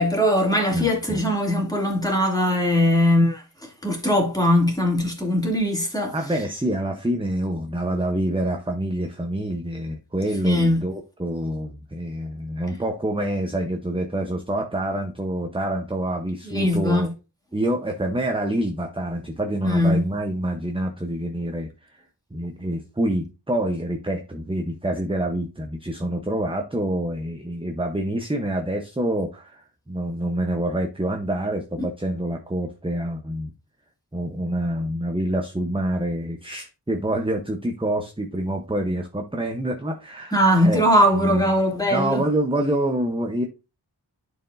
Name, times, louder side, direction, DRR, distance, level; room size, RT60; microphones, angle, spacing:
voice 1, 0.0-6.1 10.4-10.8 16.4-17.1 19.6-20.0 31.8-31.9 40.3-42.2, left 1 dB, 10° left, 2.7 m, -20 dB
voice 2, 0.7-1.2 6.1-17.1 17.5-22.0 22.3-33.5 34.1-40.4 40.6-40.9 41.1-41.4 41.9-43.4, right 1 dB, 15° right, 0.9 m, -26 dB
11.0 x 4.6 x 2.7 m
wide cardioid pair, 55°, 41 cm